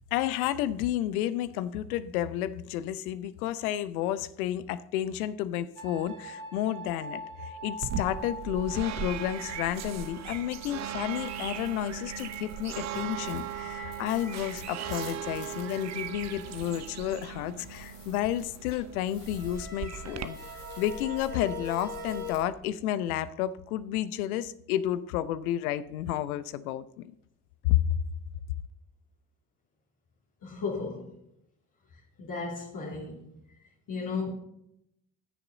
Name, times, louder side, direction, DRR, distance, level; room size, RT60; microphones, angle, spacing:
voice 1, 0.1-20.4 20.8-27.1 27.6-28.0, left 12 dB, 70° left, 16 dB, 0.8 m, -31 dB
sound 1, 5.7-17.4 19.2-22.3, equal, 80° right, 3.7 m, -44 dB
sound 2, 7.8-20.3, right 10 dB, 40° right, 0.8 m, -38 dB
sound 3, 9.7-22.4, left 4 dB, 85° left, 4.1 m, -51 dB
voice 2, 30.4-31.2 32.2-33.4 33.9-34.3, left 4 dB, 45° left, -3 dB, 2.5 m, -35 dB
14.0 x 6.8 x 3.9 m, 0.77 s
figure-of-eight pair, 55°, 45 cm